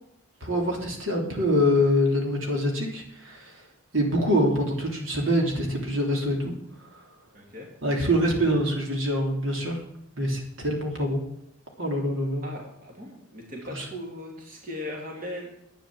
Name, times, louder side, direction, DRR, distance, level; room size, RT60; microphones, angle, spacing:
voice 1, 0.4-3.5 3.9-6.6 7.8-9.8 10.2-11.2 11.8-12.5 13.7-13.8, equal, 65° right, 0 dB, 3.2 m, -25 dB
voice 2, 7.3-7.7 12.4-15.6, left 1 dB, 40° right, 0 dB, 2.7 m, -38 dB
12.0 x 8.9 x 7.5 m, 0.77 s
head